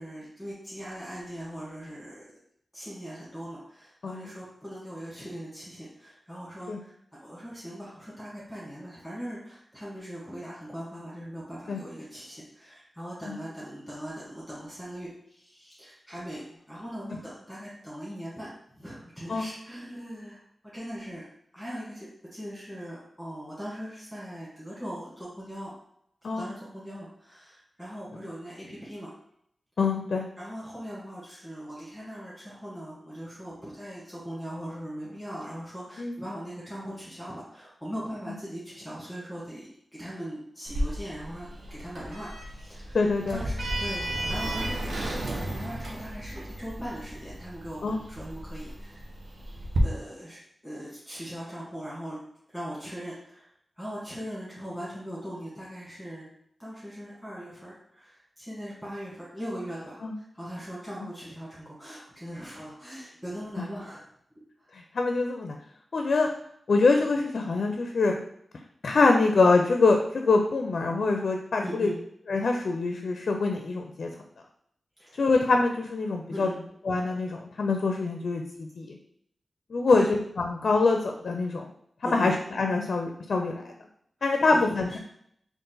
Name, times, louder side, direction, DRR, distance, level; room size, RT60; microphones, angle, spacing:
voice 1, 0.0-2.2 2.7-6.9 7.2-16.4 16.7-18.5 18.8-20.4 20.7-21.3 21.5-25.7 26.3-29.1 30.4-49.1 49.8-52.2 52.5-56.3 56.6-64.0 71.6-72.0 75.0-75.3 76.3-76.6 79.9-80.1 82.0-82.4 84.2-85.0, equal, 5° right, -8 dB, 1.6 m, -40 dB
voice 2, 29.8-30.3 36.0-36.2 42.9-43.4 47.8-48.0 60.0-60.1 64.7-65.6 65.9-66.3 66.7-68.2 68.8-71.9 72.3-74.1 75.2-76.5 76.9-79.0 79.7-81.7 82.0-83.7 84.2-85.0, left 3 dB, 75° left, 3 dB, 0.4 m, -25 dB
Sliding door, 40.7-49.8, right 1 dB, 75° right, 0.8 m, -34 dB
3.8 x 2.5 x 3.8 m, 0.70 s
wide cardioid pair, 85°, 0 cm